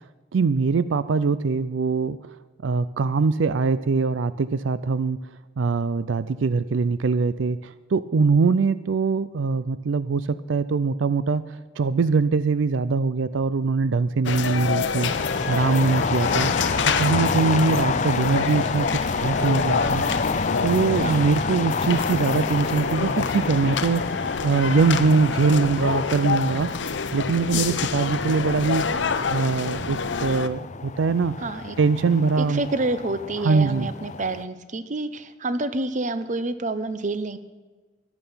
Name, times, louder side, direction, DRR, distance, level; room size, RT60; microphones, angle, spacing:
voice 1, 0.3-2.2 2.6-5.2 5.6-15.1 15.5-16.5 16.9-20.0 20.6-24.1 24.4-26.7 27.1-28.9 29.3-31.4 31.8-32.6 33.4-33.9, right 4 dB, 80° right, 15 dB, 0.5 m, -22 dB
sound 1, 14.2-30.5, left 5 dB, 70° left, 0.8 m, -27 dB
sound 2, 15.0-34.4, left 5 dB, 40° left, 0.4 m, -29 dB
voice 2, 27.5-27.9 31.4-31.8 32.4-37.4, right 2 dB, 40° right, 12 dB, 0.8 m, -28 dB
14.5 x 11.0 x 5.7 m, 1.4 s
head